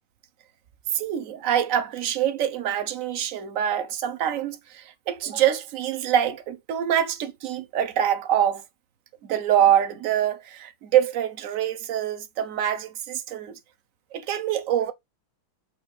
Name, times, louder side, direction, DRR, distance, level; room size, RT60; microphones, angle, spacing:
voice 1, 0.9-8.6 9.2-13.6 14.1-14.9, right 10 dB, 60° right, 0.9 m, -25 dB
7.6 x 2.6 x 4.7 m
omnidirectional pair, 2.3 m